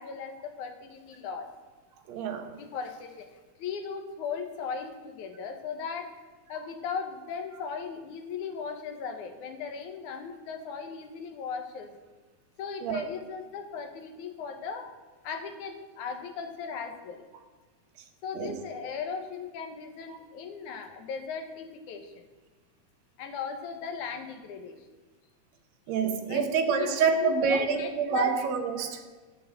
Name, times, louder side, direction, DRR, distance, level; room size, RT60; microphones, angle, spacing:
voice 1, 0.0-1.5 2.6-3.3 3.6-6.1 6.5-11.9 12.6-14.9 15.2-17.2 18.2-22.3 23.2-24.8 26.3-26.4 26.8-28.4, left 6 dB, 85° left, 5 dB, 2.7 m, -37 dB
voice 2, 2.1-2.5 12.8-13.1 18.3-18.6 20.1-20.2 25.9-29.0, right 5 dB, 70° right, 6 dB, 2.2 m, -27 dB
11.5 x 7.6 x 7.6 m, 1.3 s
omnidirectional pair, 3.3 m